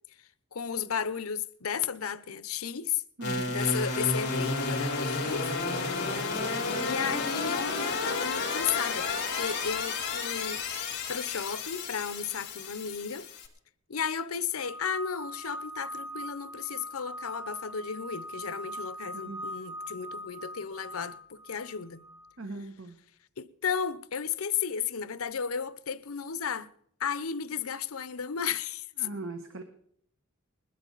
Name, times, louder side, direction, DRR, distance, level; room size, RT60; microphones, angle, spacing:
voice 1, 0.5-3.0 3.5-5.5 6.8-13.3 13.9-22.0 23.4-26.7 27.0-29.1, left 7 dB, 90° left, 0.8 m, -34 dB
sound 1, 3.2-13.5, left 3 dB, 50° left, 4.1 m, -31 dB
voice 2, 3.2-3.6 19.1-19.4 22.4-23.0 29.0-29.6, right 3 dB, 65° right, 1.5 m, -39 dB
sound 2, 14.6-22.3, equal, 25° right, 2.3 m, -41 dB
21.0 x 12.5 x 4.0 m
head